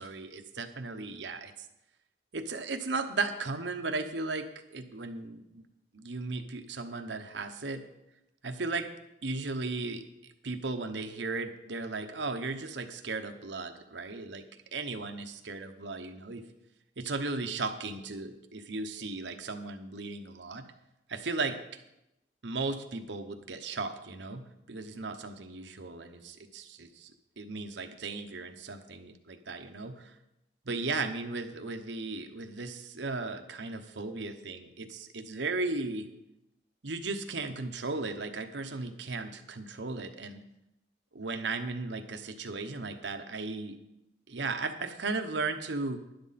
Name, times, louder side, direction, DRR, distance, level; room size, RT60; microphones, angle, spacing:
voice 1, 0.0-1.7 2.3-5.6 5.9-7.8 8.4-8.9 9.2-14.4 14.7-16.4 17.0-20.6 21.1-21.6 22.4-27.1 27.4-30.1 30.6-36.1 36.8-40.4 41.1-43.8 44.3-46.0, right 3 dB, 85° right, 7 dB, 1.0 m, -36 dB
11.5 x 10.5 x 4.2 m, 0.89 s
head